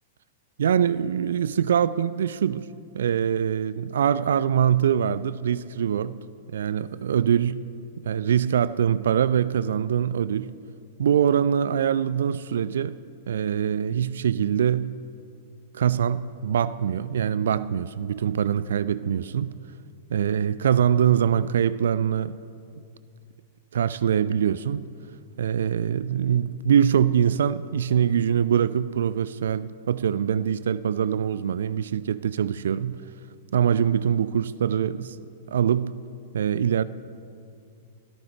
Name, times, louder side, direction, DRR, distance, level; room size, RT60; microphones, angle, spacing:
voice 1, 0.6-2.7 2.9-6.2 6.5-7.7 8.0-10.5 11.0-13.0 13.3-15.0 15.7-19.5 20.1-22.4 23.7-24.8 25.4-33.0 33.5-35.2 35.5-36.0 36.3-36.8, right 8 dB, 60° right, 0.3 m, -23 dB
22.5 x 13.0 x 3.3 m
figure-of-eight pair, 100°, 0 cm